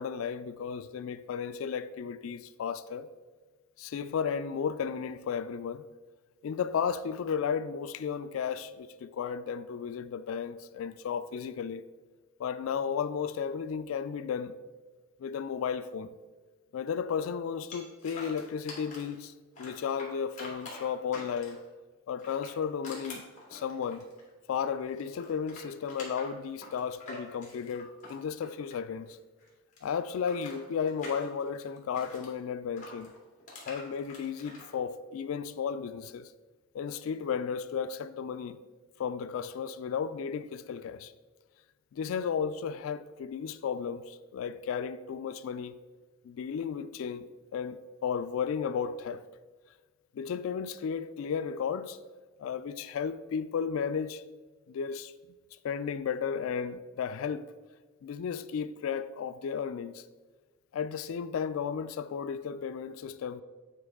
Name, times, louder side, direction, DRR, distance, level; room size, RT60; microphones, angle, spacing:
voice 1, 0.0-3.1 3.8-5.8 6.4-11.8 12.4-14.5 15.2-16.1 16.7-19.3 19.6-21.6 22.1-23.2 23.5-24.0 24.5-29.2 29.8-33.1 33.7-36.3 36.7-38.6 39.0-41.1 41.9-45.8 46.2-49.2 50.1-52.0 52.4-54.2 54.7-55.1 55.6-57.5 58.0-60.0 60.7-63.4, left 7 dB, 85° left, 0.3 m, -34 dB
sound 1, 17.7-19.2 19.5-21.7 22.1-24.7 24.9-29.1 29.4-32.3 32.8-34.7, left 2 dB, 40° left, 2.1 m, -46 dB
8.4 x 4.5 x 3.6 m
head